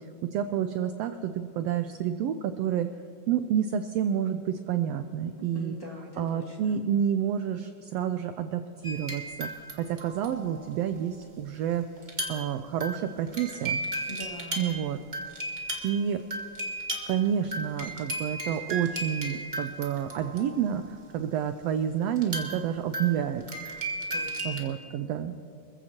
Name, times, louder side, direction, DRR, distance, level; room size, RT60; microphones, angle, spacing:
voice 1, 0.2-2.9 3.3-5.7 6.2-11.8 12.3-13.8 14.6-15.0 15.8-16.2 17.1-23.4 24.4-25.4, right 9 dB, 90° right, 8 dB, 1.4 m, -29 dB
voice 2, 5.5-6.7 14.1-14.7 24.1-24.6, equal, 15° left, -4 dB, 1.6 m, -42 dB
sound 1, 8.8-9.7 10.0-10.7 12.0-12.5 12.8-20.8 22.2-24.6, right 2 dB, 40° right, 0.6 m, -35 dB
25.5 x 15.0 x 2.9 m, 2.4 s
omnidirectional pair, 3.5 m